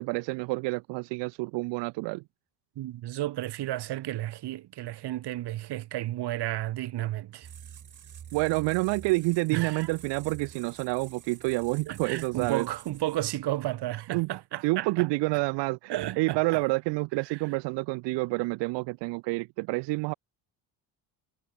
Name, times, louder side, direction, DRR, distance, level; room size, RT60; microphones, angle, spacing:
voice 1, 0.0-2.2 8.3-12.7 14.1-14.3 14.6-20.1, right 25 dB, 90° right, 1.0 m, -28 dB
voice 2, 2.8-7.5 9.5-9.9 11.9-15.1 15.9-16.6 17.3-17.4, right 15 dB, 70° right, 7.2 m, -32 dB
sound 1, 7.4-13.4, right 9 dB, 45° right, 7.1 m, -48 dB
cardioid pair, 115°, 42 cm